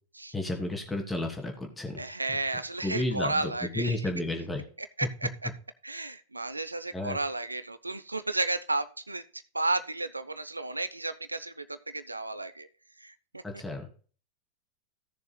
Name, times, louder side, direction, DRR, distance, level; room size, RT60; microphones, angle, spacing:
voice 1, 0.3-2.0 2.3-2.4 2.8-4.7 5.0-5.1 6.9-7.2 13.4-13.9, left 2 dB, 10° left, 2 dB, 2.9 m, -32 dB
voice 2, 2.0-3.9 5.0-5.5 5.8-9.2 9.5-12.7 13.0-13.4, right 2 dB, 80° right, 13 dB, 0.7 m, -32 dB
17.0 x 6.9 x 2.3 m, 0.39 s
figure-of-eight pair, 90°, 0 cm